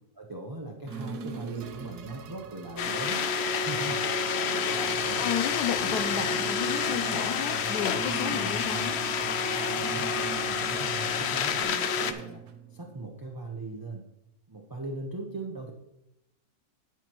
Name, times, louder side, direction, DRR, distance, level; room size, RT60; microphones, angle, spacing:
voice 1, 0.1-4.0 4.8-5.3 8.3-8.5 9.9-10.1 10.4-12.4 12.7-14.1 14.5-15.7, right 2 dB, 20° right, 0 dB, 0.5 m, -39 dB
sound 1, 0.9-13.1, right 5 dB, 80° right, 1.3 m, -42 dB
sound 2, 2.8-12.1, left 6 dB, 60° left, 0.7 m, -29 dB
sound 3, 4.7-11.6, left 1 dB, 40° left, 0.9 m, -41 dB
voice 2, 5.2-9.0, left 8 dB, 90° left, 7 dB, 1.2 m, -32 dB
17.5 x 6.0 x 3.0 m, 0.88 s
omnidirectional pair, 1.7 m